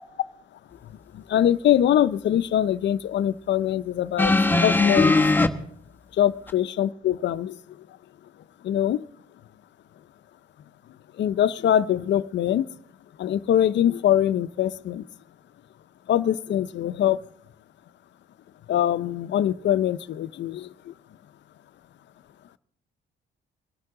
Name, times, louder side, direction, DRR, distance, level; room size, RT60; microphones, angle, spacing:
voice 1, 1.1-4.4 4.6-5.1 6.2-7.5 8.6-9.0 11.2-12.7 13.2-15.0 16.1-17.2 18.7-20.7, left 11 dB, 65° left, 14 dB, 0.6 m, -23 dB
sound 1, 4.2-5.5 6.5-6.6, left 2 dB, 10° left, 1.0 m, -19 dB
23.5 x 12.5 x 3.8 m, 0.67 s
cardioid pair, 90°, 20 cm